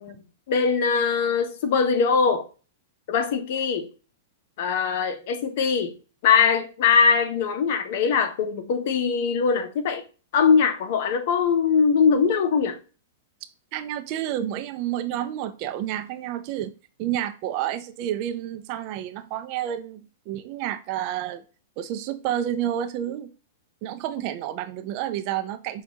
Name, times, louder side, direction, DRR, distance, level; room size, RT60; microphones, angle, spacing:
voice 1, 0.5-2.5 3.1-3.9 4.6-5.9 6.2-10.0 10.3-12.8, left 6 dB, 60° left, 0.7 m, -21 dB
voice 2, 13.7-16.7 17.0-21.4 21.8-23.3 23.8-25.8, right 11 dB, 45° right, 0.4 m, -30 dB
5.9 x 2.3 x 2.8 m
hypercardioid pair, 110°, 0 cm